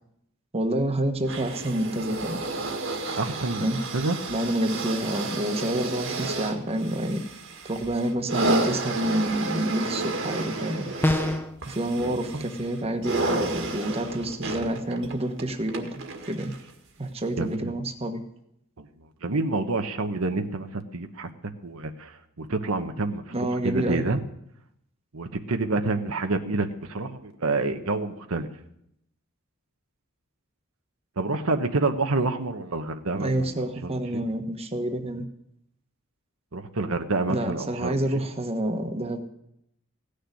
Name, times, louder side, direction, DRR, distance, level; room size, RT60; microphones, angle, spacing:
voice 1, 0.5-2.4 3.6-3.8 4.3-7.2 7.6-10.9 11.6-16.0 16.3-16.5 17.0-18.2 23.3-24.0 33.1-35.2 37.3-39.2, right 1 dB, 30° right, 5 dB, 1.3 m, -28 dB
sound 1, 1.2-16.7 17.5-17.6, right 3 dB, 65° right, 1.9 m, -32 dB
voice 2, 3.2-4.2 12.0-12.4 17.4-17.7 18.8-18.9 19.2-21.3 21.6-23.2 23.6-24.2 25.1-28.5 31.2-33.5 33.8-34.2 36.5-38.2, right 3 dB, 80° right, 7 dB, 1.1 m, -28 dB
sound 2, 11.0-11.6, left 1 dB, 10° left, 0.6 m, -24 dB
16.5 x 6.7 x 9.8 m, 0.77 s
head